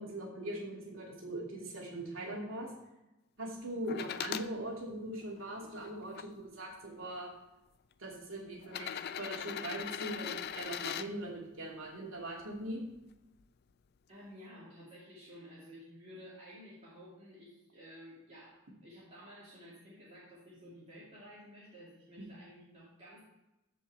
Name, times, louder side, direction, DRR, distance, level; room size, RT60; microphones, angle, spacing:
voice 1, 0.0-2.7 3.4-7.3 8.0-12.8 22.2-22.3, right 1 dB, 70° right, -2 dB, 2.6 m, -41 dB
sound 1, 3.9-4.5 5.2-6.2 7.2-7.3 8.6-11.1 13.0-13.1, left 8 dB, 45° left, 0.3 m, -40 dB
voice 2, 14.1-23.2, equal, 30° right, -9 dB, 2.5 m, -53 dB
15.0 x 5.5 x 3.4 m, 0.96 s
head